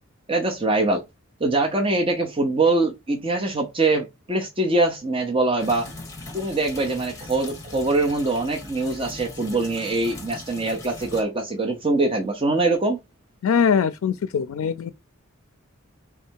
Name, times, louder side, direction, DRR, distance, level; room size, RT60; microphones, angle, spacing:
voice 1, 0.3-1.0 1.4-5.9 6.3-13.0, right 2 dB, 25° right, 0.7 m, -23 dB
sound 1, 5.6-11.2, left 2 dB, 15° left, 1.3 m, -40 dB
voice 2, 13.4-14.9, left 7 dB, 85° left, 0.4 m, -22 dB
3.5 x 3.3 x 4.5 m
head